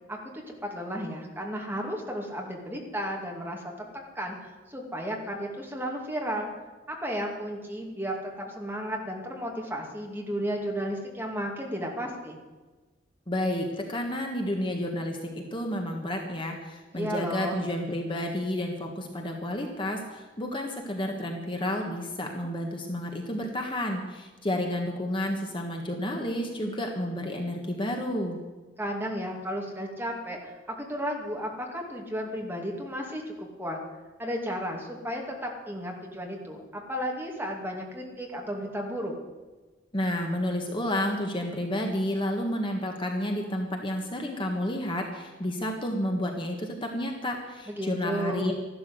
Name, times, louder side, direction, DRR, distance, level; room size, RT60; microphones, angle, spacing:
voice 1, 0.1-3.9 4.1-4.4 4.7-6.5 6.9-12.4 16.9-17.6 28.8-33.8 34.2-39.1 47.7-48.5, equal, 10° right, 0 dB, 2.5 m, -33 dB
voice 2, 13.3-15.2 15.5-28.4 39.9-48.5, left 1 dB, 25° left, 2 dB, 1.6 m, -31 dB
13.5 x 12.0 x 7.8 m, 1.2 s
head